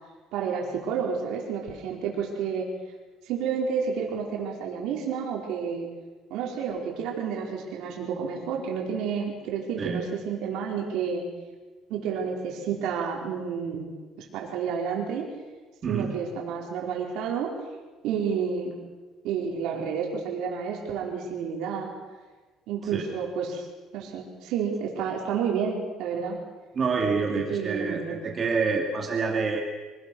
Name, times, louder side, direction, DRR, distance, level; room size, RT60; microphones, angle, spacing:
voice 1, 0.3-2.7 3.3-5.9 6.3-11.2 11.9-13.9 14.3-15.3 15.9-17.5 18.0-18.7 19.2-21.9 22.7-23.7 23.9-26.4 27.3-28.3, right 6 dB, 70° right, -1 dB, 4.5 m, -30 dB
voice 2, 15.8-16.1 22.8-23.0 26.7-29.6, right 4 dB, 25° right, 1 dB, 2.4 m, -27 dB
25.5 x 19.0 x 6.3 m, 1.3 s
cardioid pair, 175°, 0 cm